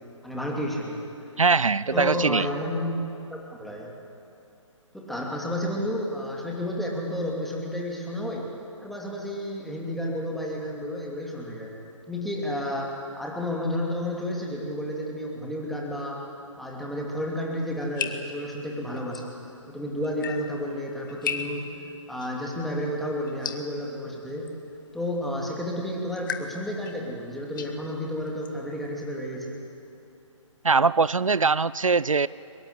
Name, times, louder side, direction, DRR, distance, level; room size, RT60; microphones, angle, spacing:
voice 1, 0.2-1.0 1.9-3.0 3.5-3.9 4.9-8.5 8.8-11.7 12.1-16.2 16.6-19.3 19.7-21.6 22.1-24.5 24.9-29.6, left 1 dB, ahead, -2 dB, 2.8 m, -31 dB
voice 2, 1.4-2.5 30.6-32.3, right 4 dB, 80° right, 20 dB, 0.5 m, -21 dB
sound 1, 17.6-29.3, left 7 dB, 40° left, 1.5 m, -39 dB
23.5 x 22.0 x 8.3 m, 2.6 s
figure-of-eight pair, 135°, 17 cm